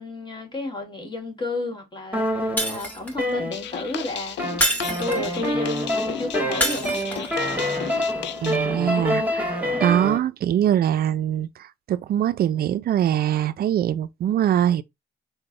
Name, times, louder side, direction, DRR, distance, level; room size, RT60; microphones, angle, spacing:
voice 1, 0.0-7.3, left 2 dB, 25° left, 1.7 m, -32 dB
sound 1, 2.1-4.0 4.4-10.2, equal, 10° right, 1.4 m, -26 dB
Shatter, 2.6-3.3 4.6-5.4 6.6-7.4, equal, 10° left, 1.5 m, -26 dB
sound 2, 3.5-8.6, left 11 dB, 65° left, 0.4 m, -35 dB
voice 2, 8.4-14.8, right 10 dB, 50° right, 0.4 m, -23 dB
3.8 x 2.1 x 3.7 m
cardioid pair, 90°, 20 cm